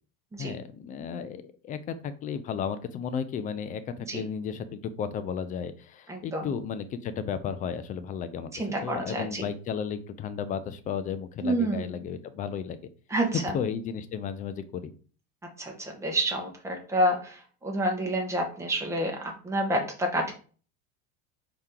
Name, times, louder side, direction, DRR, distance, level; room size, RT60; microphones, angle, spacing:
voice 1, 0.4-8.5 8.8-12.8 13.5-14.9, left 7 dB, 25° left, 11 dB, 0.3 m, -34 dB
voice 2, 6.1-6.5 8.5-9.4 11.4-11.9 13.1-13.5 15.6-19.1 19.4-20.3, right 1 dB, 10° right, 1 dB, 1.1 m, -28 dB
4.6 x 2.9 x 3.7 m, 0.39 s
supercardioid pair, 130°, 38 cm